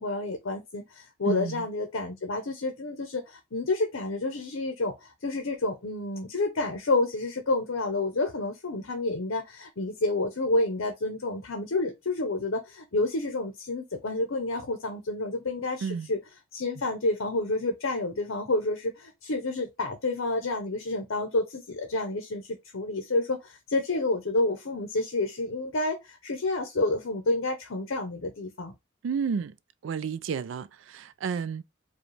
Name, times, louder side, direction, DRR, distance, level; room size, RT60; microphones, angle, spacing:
voice 1, 0.0-16.2 16.5-28.7, left 2 dB, 75° left, 0.7 m, -29 dB
voice 2, 1.3-1.6 15.8-16.1 29.0-29.5 29.8-31.6, right 6 dB, 65° right, 0.3 m, -31 dB
4.9 x 2.3 x 3.2 m
head